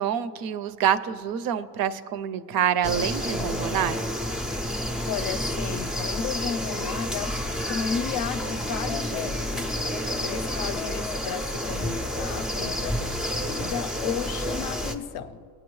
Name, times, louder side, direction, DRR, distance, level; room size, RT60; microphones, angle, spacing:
voice 1, 0.0-4.0, right 9 dB, 60° right, 0.5 m, -26 dB
sound 1, 2.8-15.0, equal, ahead, 0.4 m, -30 dB
voice 2, 5.0-15.4, left 7 dB, 60° left, 0.6 m, -34 dB
20.0 x 9.0 x 3.1 m
cardioid pair, 160°, 41 cm